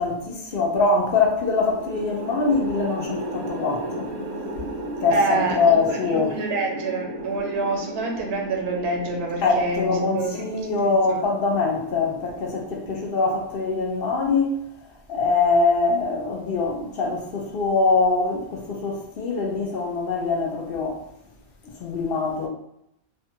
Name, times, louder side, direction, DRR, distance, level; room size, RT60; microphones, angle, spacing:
voice 1, 0.0-4.1 5.0-6.3 9.4-14.5 15.1-21.0 21.8-22.5, left 4 dB, 65° left, 0.8 m, -23 dB
sound 1, 1.4-13.8, right 1 dB, 50° right, 0.6 m, -35 dB
voice 2, 5.1-11.3, right 2 dB, 80° right, 0.9 m, -27 dB
2.6 x 2.2 x 2.8 m
omnidirectional pair, 1.1 m